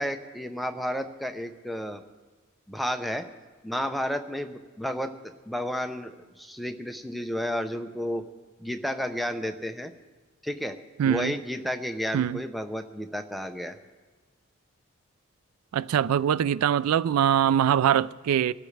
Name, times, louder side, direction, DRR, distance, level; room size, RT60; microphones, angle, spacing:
voice 1, 0.0-2.0 2.7-3.3 3.6-8.2 8.6-9.9 10.4-10.8 11.0-13.8, equal, ahead, 0.6 m, -32 dB
voice 2, 11.0-11.3 12.1-12.4 15.7-18.5, right 9 dB, 85° right, 0.3 m, -23 dB
22.5 x 13.5 x 3.3 m
head